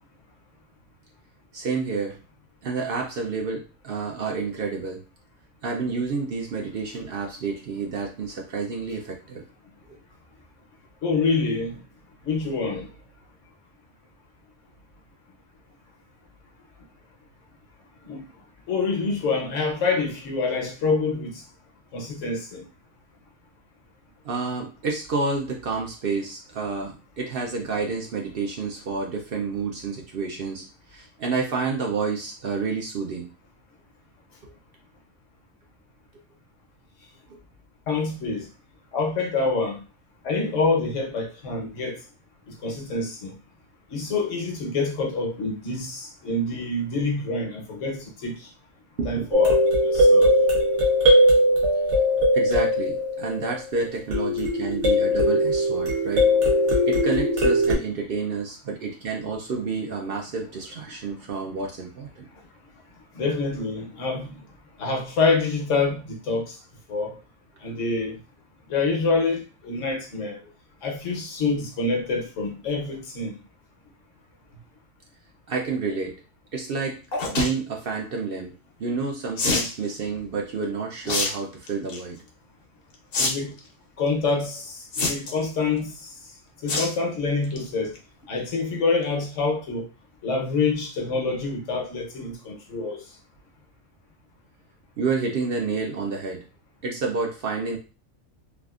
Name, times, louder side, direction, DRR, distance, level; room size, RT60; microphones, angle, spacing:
voice 1, 1.5-2.2 2.6-5.0 5.6-9.4 9.9-10.0 24.2-30.6 30.9-33.3 34.4-34.5 37.3-37.4 49.0-49.3 52.3-56.3 56.8-62.3 75.5-76.2 76.5-77.0 77.3-78.5 78.8-82.2 95.0-96.4 96.8-97.8, right 4 dB, 60° right, 0.7 m, -29 dB
voice 2, 11.0-11.8 12.2-12.9 18.0-18.2 18.7-21.4 21.9-22.6 37.9-38.5 38.9-39.8 40.2-42.0 42.6-43.4 43.9-48.5 49.0-50.3 63.1-64.4 64.8-66.6 66.9-67.1 67.6-68.2 68.7-70.4 70.8-73.4 83.2-83.5 84.0-86.1 86.6-87.9 88.3-89.9 90.2-93.0, left 3 dB, 75° left, 1.2 m, -26 dB
sound 1, 49.3-53.6 54.1-57.7, left 1 dB, 75° right, 1.3 m, -20 dB
sound 2, 77.1-77.5 79.4-79.7 81.0-81.3 81.7-82.0 83.1-83.3 83.6-83.7 84.9-85.4 86.7-86.9 87.3-87.6 87.9-88.0 88.2-88.3, left 3 dB, 55° left, 0.8 m, -25 dB
3.4 x 2.4 x 2.3 m
omnidirectional pair, 1.3 m